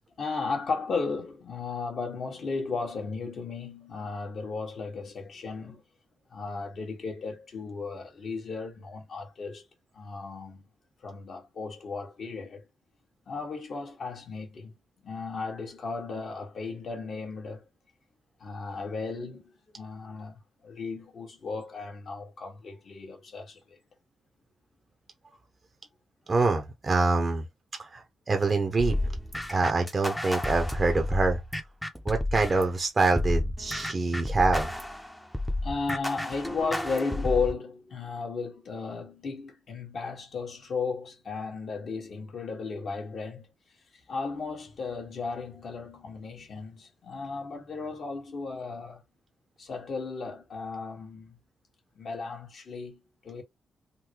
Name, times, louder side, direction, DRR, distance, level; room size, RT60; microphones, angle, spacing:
voice 1, 0.2-5.8 6.3-9.6 9.9-10.7 11.0-12.6 13.3-14.7 15.0-17.7 18.4-23.8 35.6-43.5 44.1-49.0 49.6-51.4 51.9-53.4, left 4 dB, 60° left, 1.5 m, -35 dB
voice 2, 26.3-27.4 27.8-29.0 29.5-31.4 32.0-34.7, right 3 dB, 35° right, 0.7 m, -25 dB
sound 1, 28.8-32.7 33.2-37.5, left 1 dB, 5° left, 0.7 m, -31 dB
3.8 x 2.2 x 3.0 m
cardioid pair, 95°, 0 cm